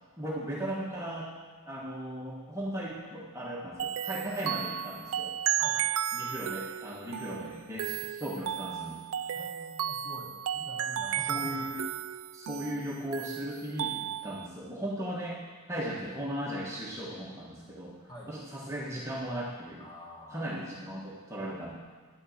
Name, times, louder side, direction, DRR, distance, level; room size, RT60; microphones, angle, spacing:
voice 1, 0.2-1.3 1.6-5.4 6.1-9.0 11.3-11.8 12.3-15.4 15.7-18.0 18.3-19.8 20.3-21.8, equal, 15° right, -5 dB, 1.4 m, -37 dB
sound 1, 3.8-14.5, right 9 dB, 65° right, 0.3 m, -34 dB
voice 2, 9.3-11.8 12.1-12.2 18.0-18.3 19.8-20.5, left 1 dB, 20° left, -4 dB, 2.2 m, -46 dB
10.5 x 6.8 x 7.2 m, 1.5 s
head